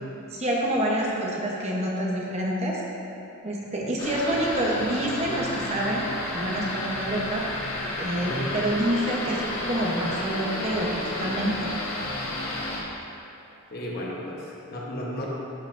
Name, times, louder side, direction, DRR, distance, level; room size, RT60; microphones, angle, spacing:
voice 1, 0.3-2.8 3.4-6.1 6.3-7.4 8.0-11.6, right 1 dB, 30° right, -3 dB, 0.9 m, -27 dB
sound 1, 4.0-12.8, left 1 dB, 80° left, 1.4 m, -32 dB
voice 2, 13.7-15.2, equal, 45° left, -3 dB, 1.0 m, -33 dB
12.0 x 5.6 x 2.6 m, 2.9 s
head